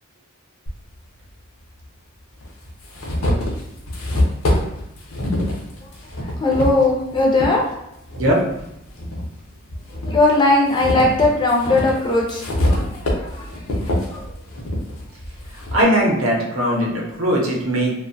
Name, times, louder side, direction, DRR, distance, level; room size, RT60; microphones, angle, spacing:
sound 1, 0.7-0.8 1.8-1.9 2.4-7.5 8.1-9.3 9.7-15.8, left 1 dB, 75° left, 0.6 m, -24 dB
voice 1, 6.4-7.6 10.0-13.5 14.1-14.3, left 2 dB, 20° left, -2 dB, 0.4 m, -19 dB
voice 2, 15.5-17.9, equal, 75° right, -2 dB, 0.6 m, -19 dB
2.5 x 2.1 x 2.5 m, 0.81 s
head